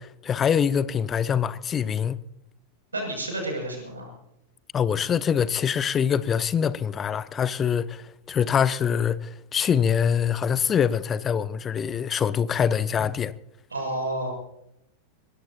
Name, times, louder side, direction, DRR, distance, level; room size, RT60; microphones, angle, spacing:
voice 1, 0.2-2.2 4.7-13.3, left 7 dB, 25° left, 0.8 m, -24 dB
voice 2, 2.9-4.1 13.7-14.3, right 1 dB, 75° right, 6.9 m, -30 dB
23.5 x 19.5 x 2.8 m
figure-of-eight pair, 90°, 0 cm